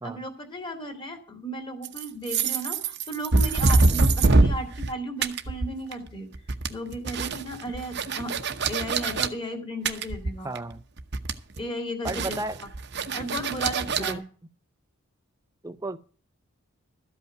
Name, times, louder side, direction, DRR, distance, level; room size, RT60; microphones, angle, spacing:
voice 1, 0.0-6.3 6.7-8.3 8.7-10.5 11.6-12.7 13.1-14.2, equal, 25° left, 2.1 m, -35 dB
sound 1, 1.8-4.9 5.2-6.1 6.3-9.3 9.9-10.7 11.0-11.6 12.1-14.1, right 3 dB, 50° right, 0.9 m, -24 dB
voice 2, 10.4-10.8 12.0-12.6 14.0-14.2 15.6-16.0, right 2 dB, 15° right, 0.5 m, -33 dB
13.5 x 5.5 x 9.1 m
head